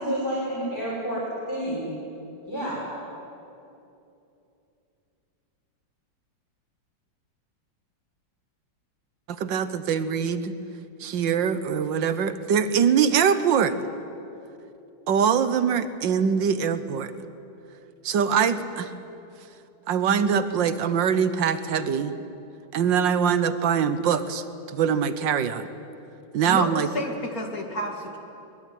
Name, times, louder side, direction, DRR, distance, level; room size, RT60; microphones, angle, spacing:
voice 1, 0.0-1.9 2.5-2.9, equal, 15° left, -8 dB, 6.0 m, -29 dB
voice 2, 9.3-10.5 11.0-13.8 15.1-17.1 18.0-18.9 19.9-22.2 22.7-25.7 26.3-26.9, right 7 dB, 70° right, 12 dB, 1.7 m, -23 dB
voice 3, 26.4-28.2, left 1 dB, 45° left, 2 dB, 2.8 m, -30 dB
22.5 x 21.0 x 9.4 m, 2.8 s
omnidirectional pair, 2.1 m